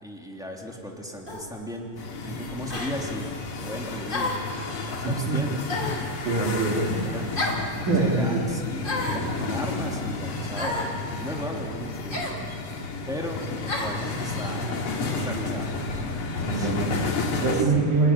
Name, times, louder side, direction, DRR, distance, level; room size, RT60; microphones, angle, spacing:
voice 1, 0.0-3.3 3.6-4.4 4.8-5.6 7.0-7.3 7.8-10.9 11.2-12.6 13.1-14.7 15.0-16.0 16.5-16.7 17.4-17.6, equal, ahead, -1 dB, 2.0 m, -36 dB
sound 1, 1.3-1.5 2.7-2.9 4.1-4.5 5.7-6.1 7.4-7.7 8.8-9.3 10.6-10.9 12.1-12.4 13.7-14.0, left 2 dB, 15° left, 2.4 m, -30 dB
sound 2, 2.0-17.6, left 3 dB, 45° left, 2.5 m, -32 dB
voice 2, 5.0-5.4 6.2-7.0 7.8-8.6 16.4-18.1, right 3 dB, 65° right, -3 dB, 4.3 m, -25 dB
27.5 x 14.5 x 9.7 m, 2.4 s
omnidirectional pair, 3.9 m